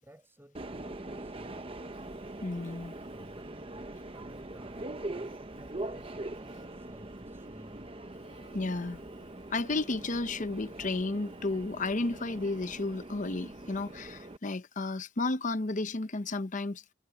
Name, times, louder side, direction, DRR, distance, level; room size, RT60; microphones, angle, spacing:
voice 1, 0.0-1.7 3.0-7.9, equal, 10° right, 5.5 m, -55 dB
Subway metro underground, 0.5-14.4, right 2 dB, 30° right, 1.0 m, -42 dB
voice 2, 2.4-2.9 8.3-9.0 9.5-16.8, left 2 dB, 40° left, 0.8 m, -33 dB
head